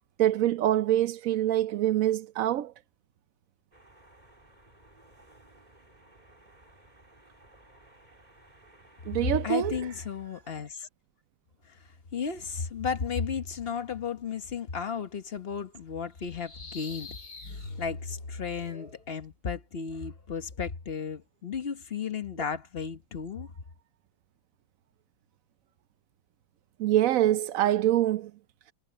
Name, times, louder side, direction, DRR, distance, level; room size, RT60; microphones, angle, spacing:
voice 1, 0.2-2.7 9.1-9.7 26.8-28.3, right 12 dB, 65° right, 0.9 m, -25 dB
sound 1, 3.7-9.7, right 1 dB, 25° right, 4.1 m, -57 dB
voice 2, 9.4-10.9 11.6-11.8 12.1-17.2 17.8-23.5, left 6 dB, 40° left, 1.2 m, -34 dB
sound 2, 16.2-19.0, left 3 dB, 80° left, 4.2 m, -42 dB
omnidirectional pair, 1.7 m